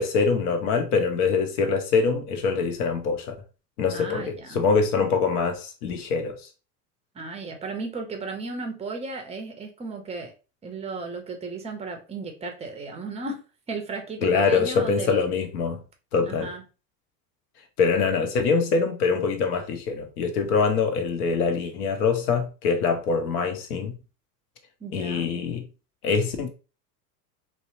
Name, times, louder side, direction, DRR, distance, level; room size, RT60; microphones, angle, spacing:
voice 1, 0.0-3.4 3.8-6.4 14.2-15.8 16.1-16.5 17.8-24.0 24.9-25.6 26.0-26.5, left 5 dB, 65° left, 0.8 m, -24 dB
voice 2, 3.9-4.6 5.0-5.1 7.1-10.3 10.6-13.4 13.7-15.3 16.2-16.6 24.8-25.3, right 3 dB, 15° right, 0.5 m, -35 dB
2.7 x 2.0 x 2.6 m
hypercardioid pair, 80°, 49 cm